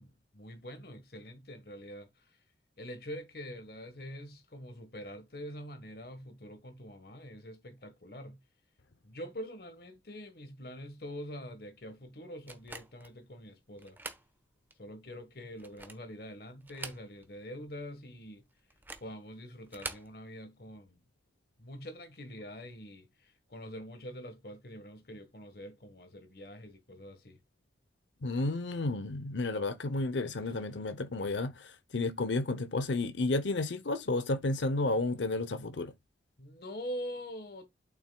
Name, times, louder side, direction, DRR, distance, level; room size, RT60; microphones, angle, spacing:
voice 1, 0.0-2.4 2.8-8.4 9.0-14.0 14.8-18.4 19.0-21.0 21.6-27.4 30.5-30.6 36.4-37.7, equal, 55° left, 1.3 m, -45 dB
sound 1, 12.5-13.1 13.8-14.3 14.7-14.8 15.5-16.1 16.6-17.4 17.7-17.8 18.7-19.1 19.6-20.1, right 3 dB, 10° right, 0.9 m, -44 dB
voice 2, 28.2-35.9, left 2 dB, 90° left, 0.7 m, -32 dB
8.8 x 7.4 x 2.2 m
head